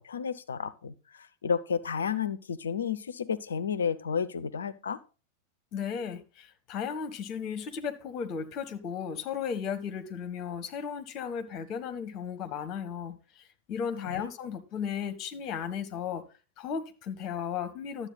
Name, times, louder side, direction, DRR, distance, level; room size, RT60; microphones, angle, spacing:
voice 1, 0.0-5.0 14.1-14.3, left 6 dB, 70° left, 0.6 m, -32 dB
voice 2, 5.7-16.2 16.6-18.1, left 7 dB, 35° left, 1.3 m, -35 dB
11.5 x 7.7 x 4.1 m
figure-of-eight pair, 90°, 0 cm